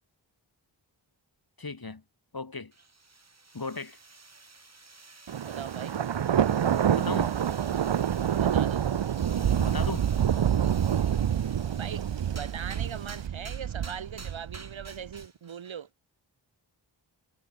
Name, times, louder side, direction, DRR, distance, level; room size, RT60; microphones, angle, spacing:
voice 1, 1.6-2.0 2.3-2.7 3.5-4.0 6.9-7.3 9.6-10.1, left 3 dB, 50° left, 5.8 m, -36 dB
sound 1, 2.7-15.8, right 3 dB, 35° right, 2.4 m, -50 dB
Thunder, 5.3-15.1, right 9 dB, 70° right, 0.8 m, -27 dB
voice 2, 5.4-6.0 8.4-8.8 11.7-15.9, right 8 dB, 85° right, 1.3 m, -40 dB
wide cardioid pair, 70°, 46 cm